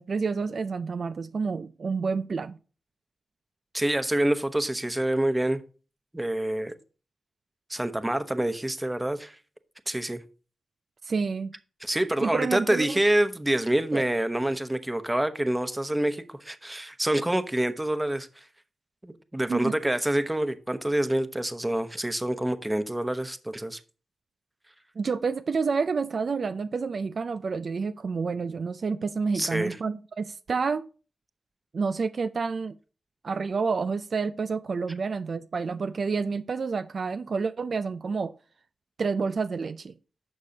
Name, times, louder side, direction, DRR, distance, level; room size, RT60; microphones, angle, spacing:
voice 1, 0.0-2.6 11.0-11.5 12.2-13.0 13.9-14.0 19.5-19.7 25.0-30.9 31.7-32.8 33.2-38.3 39.0-39.9, right 5 dB, 65° right, 0.4 m, -29 dB
voice 2, 3.7-5.6 6.1-6.7 7.7-9.4 9.9-10.2 11.8-18.3 19.0-23.8 29.3-29.8, right 1 dB, 15° right, 1.0 m, -27 dB
11.5 x 6.5 x 2.8 m
cardioid pair, 50°, 0 cm